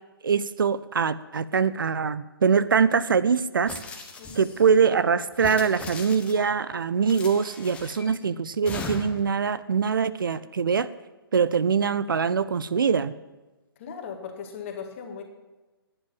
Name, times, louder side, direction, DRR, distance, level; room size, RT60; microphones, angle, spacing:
voice 1, 0.2-3.7 4.4-10.9 11.3-13.1, right 6 dB, 60° right, 16 dB, 0.5 m, -23 dB
sound 1, 3.7-4.7 5.3-6.5 7.1-8.1 8.7-9.3, left 3 dB, 10° left, 1.2 m, -38 dB
voice 2, 13.8-15.2, left 6 dB, 35° left, 4 dB, 1.8 m, -38 dB
11.5 x 9.9 x 7.1 m, 1.1 s
figure-of-eight pair, 135°, 13 cm